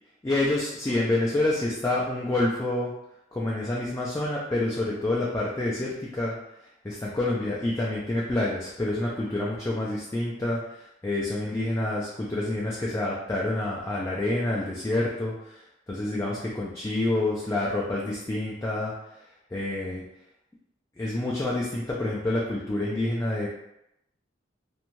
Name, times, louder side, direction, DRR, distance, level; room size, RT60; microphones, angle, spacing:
voice 1, 0.2-2.9 3.3-6.3 6.8-18.9 19.5-20.0 21.0-23.5, left 2 dB, 15° left, -5 dB, 0.3 m, -28 dB
2.6 x 2.2 x 3.0 m, 0.83 s
head